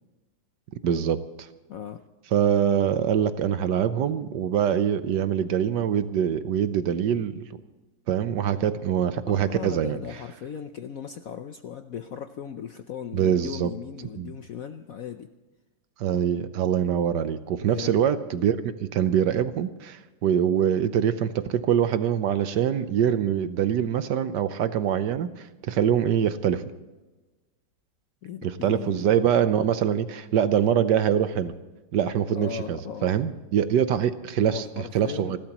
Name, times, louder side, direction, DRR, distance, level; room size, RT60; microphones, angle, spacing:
voice 1, 0.8-1.5 2.3-7.5 8.1-10.0 13.1-13.7 14.2-14.3 16.0-26.6 28.4-31.5 31.9-35.4, right 9 dB, 70° right, 11 dB, 1.3 m, -24 dB
voice 2, 1.7-2.0 9.3-15.3 17.7-18.0 28.2-29.1 32.3-33.1 34.4-35.4, left 8 dB, 65° left, 8 dB, 0.8 m, -37 dB
29.5 x 12.5 x 3.0 m, 1.1 s
omnidirectional pair, 2.1 m